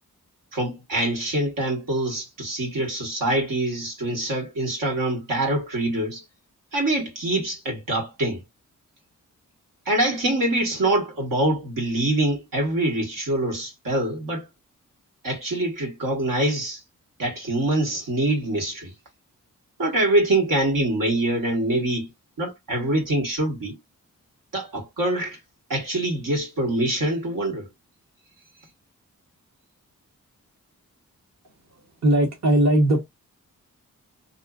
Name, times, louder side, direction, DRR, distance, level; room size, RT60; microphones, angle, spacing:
voice 1, 0.5-6.2 6.7-8.4 9.9-14.5 15.2-16.8 17.2-18.9 19.8-22.1 22.4-23.8 24.5-25.4 25.7-27.7, right 1 dB, 85° right, 1.4 m, -24 dB
voice 2, 32.0-33.0, right 1 dB, 55° right, 1.0 m, -18 dB
2.6 x 2.3 x 2.4 m
cardioid pair, 75°, 32 cm